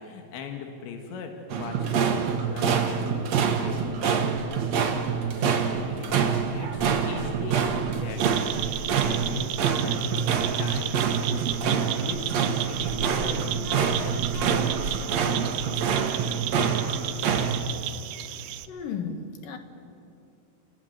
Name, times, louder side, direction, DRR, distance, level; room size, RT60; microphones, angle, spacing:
voice 1, 0.0-14.8, left 5 dB, 85° left, 4 dB, 4.0 m, -39 dB
sound 1, 1.5-17.6, right 6 dB, 60° right, 1.9 m, -26 dB
sound 2, 8.2-18.7, right 13 dB, 80° right, 2.9 m, -34 dB
voice 2, 18.7-19.6, left 6 dB, 60° left, 6 dB, 2.8 m, -34 dB
30.0 x 19.0 x 9.4 m, 2.7 s
omnidirectional pair, 5.1 m